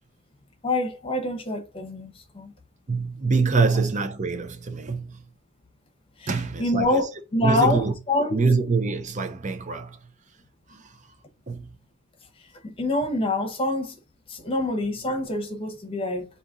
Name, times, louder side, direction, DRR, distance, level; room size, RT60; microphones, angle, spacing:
voice 1, 0.6-2.5 6.2-6.3 6.6-8.4 12.6-13.9 14.3-16.3, left 1 dB, 25° left, 0.9 m, -26 dB
voice 2, 2.9-5.2 6.3-7.1 7.4-7.9 8.3-10.0 10.7-11.0 11.5-11.8, right 4 dB, 35° right, 0.6 m, -25 dB
4.2 x 2.8 x 3.7 m
head